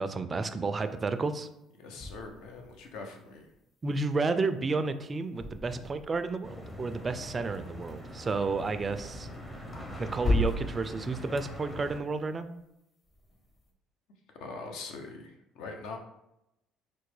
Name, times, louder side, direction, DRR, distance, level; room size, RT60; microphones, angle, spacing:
voice 1, 0.0-1.5 3.8-9.3 10.0-12.5, right 3 dB, 35° right, 10 dB, 0.3 m, -31 dB
sound 1, 0.8-0.9 1.9-4.6 4.9-7.6 7.9-8.0 8.3-12.7 13.0-13.7, left 1 dB, 40° left, 1.1 m, -37 dB
voice 2, 1.8-3.5 14.4-16.0, left 3 dB, 75° left, 3 dB, 0.6 m, -42 dB
sound 2, 6.4-12.0, equal, 25° left, 0.8 m, -43 dB
4.3 x 2.1 x 3.2 m, 0.86 s
supercardioid pair, 70°, 0 cm